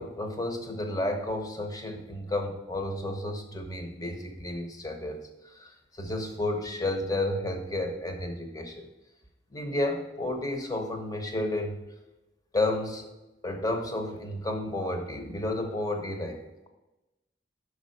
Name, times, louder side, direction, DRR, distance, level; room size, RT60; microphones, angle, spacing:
voice 1, 0.0-8.8 9.5-11.8 12.5-13.1 13.4-16.7, left 1 dB, 20° left, 4 dB, 0.9 m, -32 dB
6.3 x 5.0 x 6.4 m, 1.0 s
head